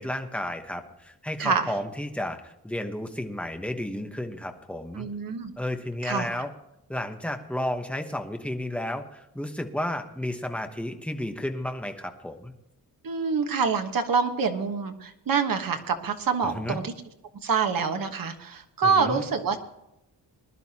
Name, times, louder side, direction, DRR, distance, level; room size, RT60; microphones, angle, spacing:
voice 1, 0.0-5.1 5.6-6.5 6.9-12.5 16.4-16.8 18.8-19.3, left 1 dB, 5° left, 5 dB, 1.1 m, -32 dB
voice 2, 1.4-1.7 4.9-5.5 6.0-6.4 13.0-16.9 17.4-19.6, right 5 dB, 60° right, 6 dB, 1.4 m, -26 dB
21.0 x 11.5 x 2.9 m, 0.89 s
wide cardioid pair, 155°, 37 cm